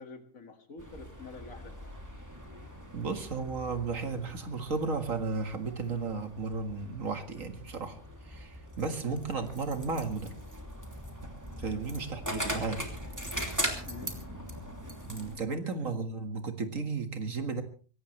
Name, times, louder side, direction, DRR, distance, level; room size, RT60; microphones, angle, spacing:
voice 1, 0.0-1.8 11.6-11.8 13.9-14.1 15.5-15.6, left 4 dB, 85° left, 6 dB, 2.5 m, -47 dB
sound 1, 0.8-15.4, equal, 15° right, 2.7 m, -40 dB
voice 2, 2.9-8.0 8.2-10.3 11.6-12.9 15.1-17.6, right 4 dB, 75° right, 7 dB, 2.2 m, -34 dB
23.0 x 17.5 x 3.3 m, 0.39 s
omnidirectional pair, 1.4 m